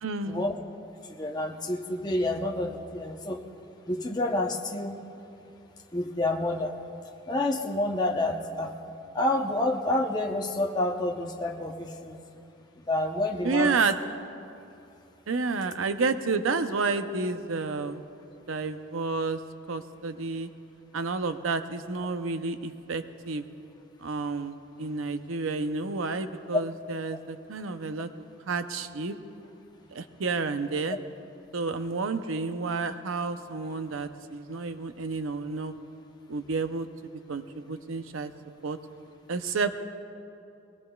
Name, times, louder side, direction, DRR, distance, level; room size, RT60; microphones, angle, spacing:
voice 1, 0.0-0.4 13.4-14.0 15.3-18.0 18.5-19.4 19.7-20.5 20.9-23.4 24.0-28.1 28.5-29.2 29.9-31.0 31.5-35.7 36.3-36.9 37.3-38.3 38.6-38.8 39.3-39.8, right 4 dB, 85° right, 9 dB, 0.7 m, -30 dB
voice 2, 1.1-3.4 3.8-5.0 5.9-6.8 7.3-8.7 9.1-12.2 12.8-13.8 26.5-26.6, left 1 dB, 20° left, 1 dB, 0.8 m, -28 dB
21.5 x 19.0 x 2.3 m, 2.7 s
head